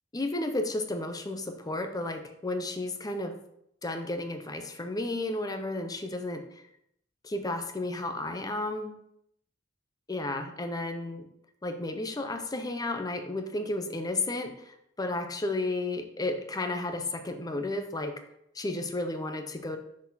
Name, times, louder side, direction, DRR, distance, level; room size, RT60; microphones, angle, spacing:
voice 1, 0.1-3.4 3.8-6.4 7.2-9.0 10.1-11.3 11.6-14.5 15.0-18.2 18.6-19.8, left 2 dB, 20° left, 7 dB, 0.6 m, -32 dB
6.2 x 4.2 x 4.0 m, 0.75 s
head